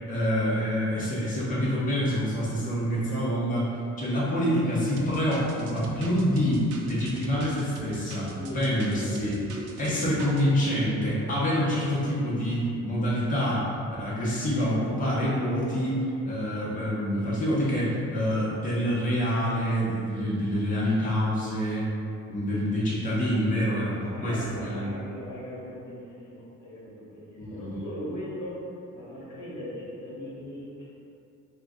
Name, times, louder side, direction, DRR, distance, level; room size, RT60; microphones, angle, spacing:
voice 1, 0.1-3.7 4.0-9.4 9.8-13.7 14.0-16.0 16.2-21.9 22.3-24.9 27.4-27.8, equal, 25° left, -8 dB, 0.9 m, -26 dB
sound 1, 5.0-10.4, right 3 dB, 75° right, 0.5 m, -43 dB
voice 2, 8.3-8.6 8.9-9.1 9.4-12.1 15.5-15.7 21.3-21.5 24.1-30.9, equal, 70° left, -6 dB, 1.2 m, -40 dB
2.9 x 2.4 x 3.6 m, 2.7 s
cardioid pair, 90°, 30 cm